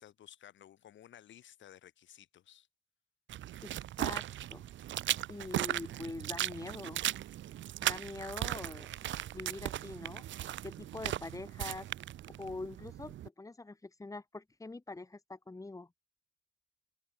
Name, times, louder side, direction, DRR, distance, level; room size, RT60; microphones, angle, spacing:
voice 1, 0.0-2.7, left 11 dB, 70° left, 3.7 m, -56 dB
sound 1, 3.3-13.3, right 13 dB, 75° right, 1.2 m, -37 dB
voice 2, 3.6-4.6 5.3-7.0 7.8-10.3 10.6-11.9 12.4-15.9, left 3 dB, 15° left, 2.4 m, -44 dB
cardioid pair, 90°, 20 cm